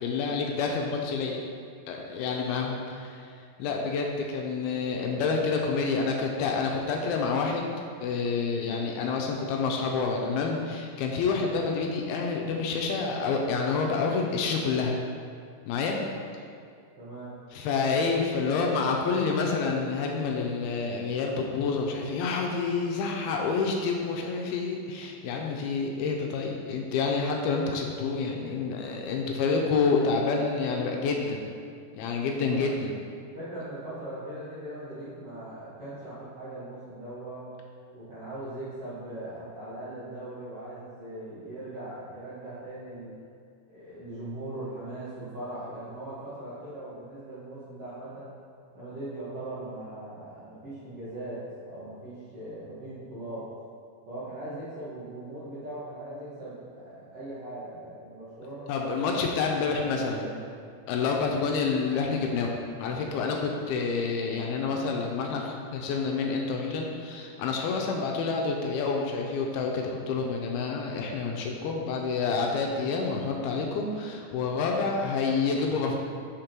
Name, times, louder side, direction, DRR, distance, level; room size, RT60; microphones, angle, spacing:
voice 1, 0.0-1.4 1.9-3.3 3.6-7.7 8.0-15.0 15.7-16.0 17.5-31.5 32.0-32.9 58.7-60.3 60.9-62.5 62.8-76.0, left 4 dB, 80° left, 1 dB, 2.4 m, -28 dB
voice 2, 17.0-17.3 32.4-32.7 33.3-37.5 37.9-43.1 43.7-48.3 48.7-53.5 54.1-59.2 59.7-60.4, right 1 dB, 65° right, -12 dB, 1.5 m, -40 dB
5.9 x 5.1 x 4.4 m, 2.3 s
omnidirectional pair, 4.6 m